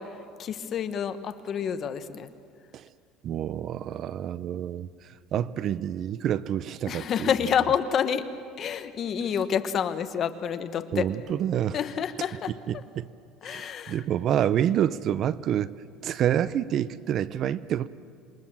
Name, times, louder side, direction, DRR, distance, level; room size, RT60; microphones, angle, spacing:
voice 1, 0.4-2.3 6.9-8.2 8.6-11.1 11.7-12.8 13.4-14.0, left 8 dB, 40° left, 10 dB, 1.3 m, -28 dB
voice 2, 3.2-4.9 5.3-7.3 10.9-11.8 12.7-13.1 13.5-15.7 16.0-17.9, right 10 dB, 45° right, 17 dB, 0.6 m, -27 dB
27.5 x 22.0 x 7.5 m, 2.3 s
cardioid pair, 140°, 0 cm